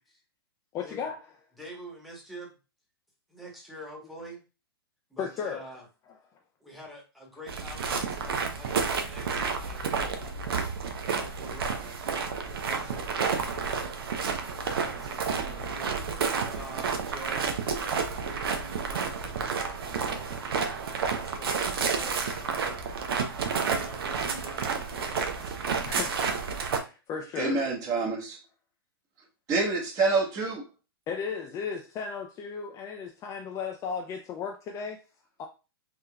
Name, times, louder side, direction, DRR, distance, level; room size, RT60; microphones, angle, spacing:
voice 1, 0.7-1.2 5.2-5.6 25.6-26.4 26.7-27.6 31.1-35.0 35.4-35.5, left 6 dB, 25° left, 0.4 m, -35 dB
voice 2, 1.6-2.6 3.3-4.4 5.1-5.9 6.6-10.3 11.1-12.1 12.6-13.1 14.7-16.0 16.5-17.5 18.0-20.5 21.2-22.9 23.5-25.6, right 1 dB, ahead, 1.1 m, -46 dB
sound 1, 7.5-26.8, right 5 dB, 75° right, 0.7 m, -30 dB
voice 3, 27.4-28.4 29.5-30.6, right 3 dB, 30° right, 1.1 m, -27 dB
3.5 x 2.8 x 2.2 m
hypercardioid pair, 125°, 13 cm